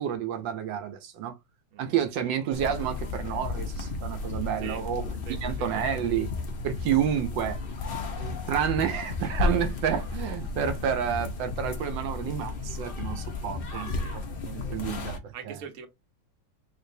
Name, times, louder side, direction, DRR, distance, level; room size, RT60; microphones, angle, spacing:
voice 1, 0.0-1.4 1.8-5.0 5.4-6.3 6.6-7.6 8.2-13.9 14.5-15.5, right 9 dB, 75° right, 1.3 m, -29 dB
sound 1, 2.5-15.2, left 3 dB, 70° left, 0.5 m, -33 dB
voice 2, 5.3-5.7 13.7-14.2 14.7-15.9, right 7 dB, 60° right, 1.0 m, -43 dB
3.9 x 3.3 x 2.6 m
omnidirectional pair, 2.2 m